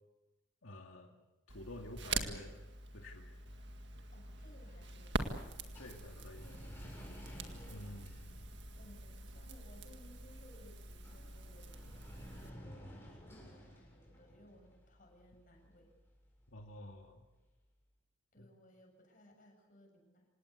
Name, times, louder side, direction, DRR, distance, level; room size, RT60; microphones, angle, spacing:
voice 1, 0.6-1.2 1.5-2.6 2.9-3.3 5.7-6.5 7.7-8.5 16.5-17.2 18.4-18.5, left 1 dB, 80° left, 1 dB, 2.4 m, -50 dB
Crackle, 1.5-12.5, right 3 dB, 55° right, 2.0 m, -44 dB
voice 2, 4.1-8.0 8.8-12.0 12.4-15.9 18.3-20.3, equal, 40° left, 2 dB, 7.2 m, -62 dB
sound 1, 4.6-17.7, equal, 10° left, 7.4 m, -57 dB
27.0 x 18.5 x 8.3 m, 1.1 s
head